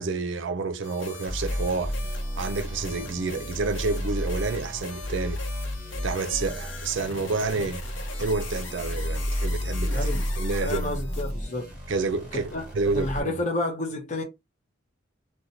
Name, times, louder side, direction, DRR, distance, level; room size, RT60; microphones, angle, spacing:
voice 1, 0.0-5.4 6.0-7.9 8.2-11.0 11.9-13.3, right 3 dB, 65° right, 0.5 m, -29 dB
sound 1, 0.8-11.3, left 3 dB, 70° left, 0.8 m, -41 dB
sound 2, 1.3-13.2, equal, 5° right, 1.2 m, -32 dB
voice 2, 9.9-10.2 10.6-11.7 12.3-12.6 12.9-14.2, left 2 dB, 40° left, 0.7 m, -30 dB
2.8 x 2.2 x 3.8 m
head